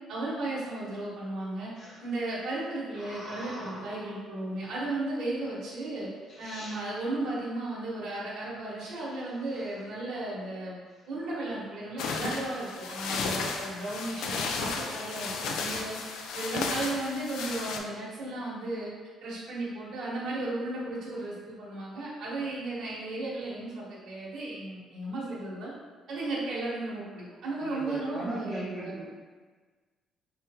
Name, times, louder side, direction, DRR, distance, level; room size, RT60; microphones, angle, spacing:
voice 1, 0.1-1.7 2.0-6.1 6.4-10.8 11.1-16.0 16.3-18.9 19.2-25.7 26.1-28.9, right 2 dB, 55° right, -7 dB, 1.1 m, -35 dB
sound 1, 1.7-4.3 5.0-5.4 6.0-6.1 6.3-6.8 8.8-10.5 10.9-11.3 11.6-12.8 13.3-13.7 14.5-15.6, equal, 40° left, 0.9 m, -48 dB
sound 2, 12.0-17.8, left 4 dB, 80° left, 0.4 m, -34 dB
voice 2, 27.6-29.1, right 1 dB, ahead, -9 dB, 1.0 m, -37 dB
3.4 x 2.8 x 3.4 m, 1.4 s
cardioid pair, 170°, 0 cm